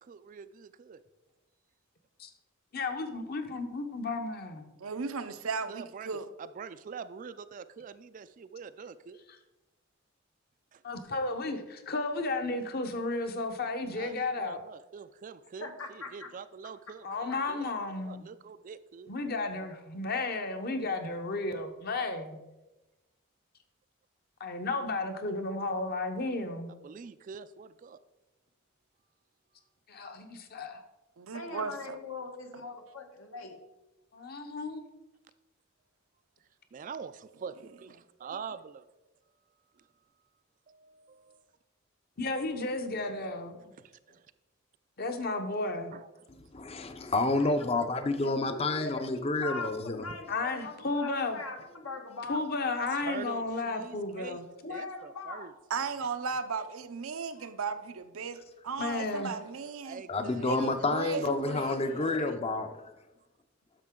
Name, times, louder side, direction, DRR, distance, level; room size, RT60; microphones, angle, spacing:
voice 1, 0.0-1.0 5.7-9.2 10.7-10.8 14.0-19.1 26.8-28.0 36.7-38.7 40.7-41.4 43.8-44.3 45.9-46.1 47.0-47.1 52.9-54.4 54.7-55.5 59.8-62.4, right 6 dB, 40° right, 0.3 m, -45 dB
voice 2, 2.7-4.7 10.8-14.6 17.0-18.3 19.1-22.4 24.4-26.7 29.9-30.8 34.1-34.8 42.2-43.7 45.0-45.9 50.3-51.4 52.3-54.4 58.8-59.3, left 3 dB, 45° left, 0.9 m, -33 dB
voice 3, 4.8-6.3 31.2-32.0 55.7-58.4 58.6-60.0 60.5-62.2, right 5 dB, 85° right, 0.6 m, -36 dB
voice 4, 15.6-16.3 17.3-17.4 31.3-33.5 47.3-49.7 50.0-52.4 54.6-55.5, left 3 dB, 80° left, 1.3 m, -41 dB
voice 5, 46.3-50.1 60.1-62.9, left 2 dB, 30° left, 0.6 m, -29 dB
10.0 x 6.6 x 3.7 m
head